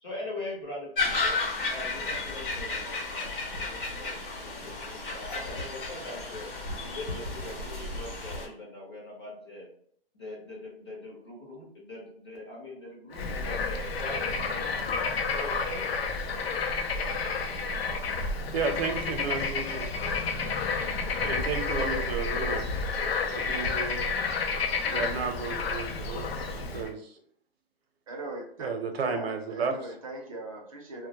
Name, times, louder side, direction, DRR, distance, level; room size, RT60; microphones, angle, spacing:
voice 1, 0.0-1.4 1.7-9.7 10.1-14.8 15.3-15.9, left 1 dB, 25° left, -4 dB, 0.6 m, -42 dB
sound 1, 1.0-8.5, left 3 dB, 60° left, 0.9 m, -33 dB
Bird / Frog, 13.1-26.9, left 4 dB, 75° left, 0.5 m, -30 dB
voice 2, 18.5-19.9 21.2-22.7 23.3-24.0 24.9-27.1 28.6-29.9, right 4 dB, 80° right, 4 dB, 0.7 m, -33 dB
voice 3, 28.1-28.7 29.1-31.1, right 2 dB, 35° right, 1 dB, 0.5 m, -40 dB
2.1 x 2.1 x 2.8 m, 0.63 s
hypercardioid pair, 175°, 31 cm